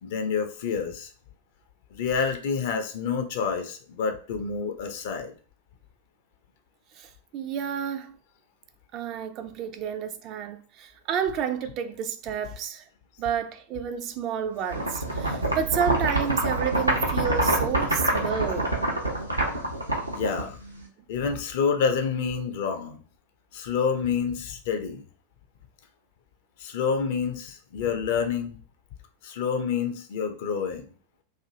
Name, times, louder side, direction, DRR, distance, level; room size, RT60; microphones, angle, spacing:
voice 1, 0.0-1.1 1.9-5.3 20.1-20.6 21.1-23.0 23.5-25.0 26.6-28.6 29.2-30.9, left 6 dB, 50° left, 0.5 m, -28 dB
voice 2, 6.9-8.2 8.9-12.9 13.2-18.8 19.5-19.6, right 8 dB, 35° right, 0.3 m, -30 dB
sound 1, 14.7-20.8, right 1 dB, 85° right, 0.6 m, -26 dB
2.6 x 2.5 x 2.7 m
figure-of-eight pair, 90°, 0 cm